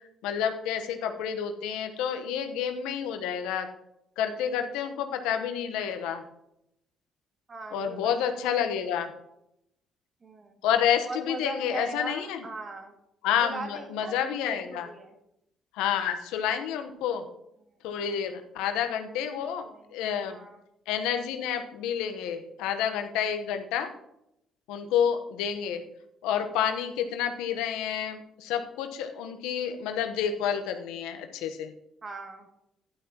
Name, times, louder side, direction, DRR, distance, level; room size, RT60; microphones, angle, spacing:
voice 1, 0.2-3.7 4.2-6.2 7.7-9.1 10.6-12.4 13.2-14.9 15.7-17.2 17.8-20.4 20.9-23.9 24.7-25.8 26.2-31.7, left 8 dB, 80° left, 6 dB, 1.0 m, -29 dB
voice 2, 7.5-8.3 8.6-9.0 10.2-10.6 11.0-12.9 13.4-15.1 19.1-19.4 19.6-20.6 32.0-32.5, right 3 dB, 40° right, 3 dB, 2.3 m, -40 dB
12.5 x 11.0 x 2.9 m, 0.80 s
supercardioid pair, 60°, 0 cm